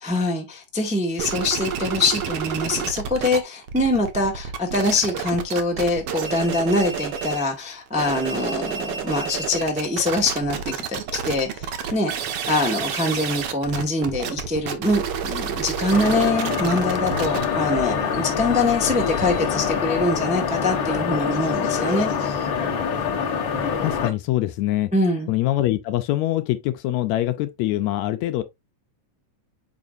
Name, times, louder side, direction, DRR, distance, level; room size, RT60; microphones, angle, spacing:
voice 1, 0.0-12.1 12.5-22.5 24.9-25.3, left 2 dB, 5° right, 0.5 m, -24 dB
sound 1, 1.2-3.4 3.6-7.5 7.9-19.4, right 7 dB, 65° right, 1.6 m, -30 dB
sound 2, 15.9-24.1, left 7 dB, 55° left, 1.5 m, -25 dB
voice 2, 23.8-24.9 25.3-28.4, left 15 dB, 80° left, 1.9 m, -24 dB
7.4 x 5.3 x 2.6 m
omnidirectional pair, 3.5 m